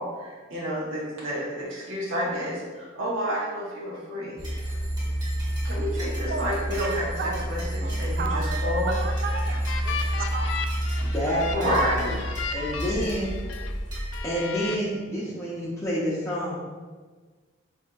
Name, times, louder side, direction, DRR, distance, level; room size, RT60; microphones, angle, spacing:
voice 1, 0.0-4.3 5.6-8.9 11.5-12.0, equal, 85° right, -6 dB, 0.8 m, -30 dB
sound 1, 4.4-14.2, right 1 dB, 20° right, 0.8 m, -29 dB
voice 2, 7.2-10.7 11.2-11.8 12.0-12.1, right 4 dB, 50° right, 4 dB, 0.3 m, -35 dB
sound 2, 8.7-13.7 14.1-14.8, left 5 dB, 75° left, 0.3 m, -35 dB
voice 3, 11.0-12.1 12.5-13.3 14.2-16.5, equal, 15° left, -8 dB, 0.5 m, -28 dB
4.7 x 2.6 x 2.2 m, 1.4 s
head